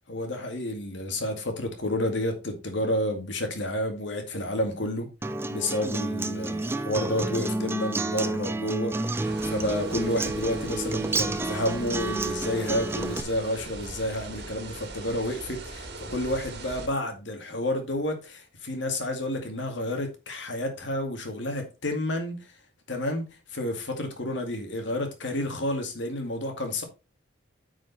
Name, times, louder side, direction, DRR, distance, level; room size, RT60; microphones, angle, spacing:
voice 1, 0.1-5.1 5.5-22.5 22.9-26.8, left 1 dB, 65° left, 2.2 m, -30 dB
Acoustic guitar, 5.2-13.2, right 2 dB, 10° right, 0.4 m, -30 dB
sound 1, 9.2-16.9, right 2 dB, 55° right, 1.9 m, -41 dB
9.0 x 5.1 x 4.1 m
head